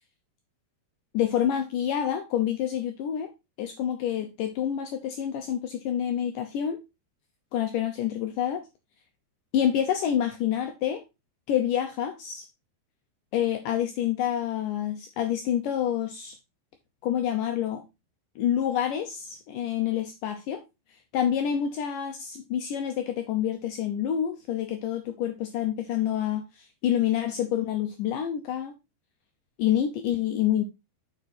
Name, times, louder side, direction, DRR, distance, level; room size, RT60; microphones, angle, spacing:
voice 1, 1.1-3.3 3.6-6.8 7.5-8.7 9.5-11.0 11.5-12.5 13.3-16.4 17.0-17.8 18.4-20.6 21.1-28.8 29.6-30.6, left 10 dB, 85° left, 1.8 m, -27 dB
7.0 x 5.3 x 4.2 m
omnidirectional pair, 4.8 m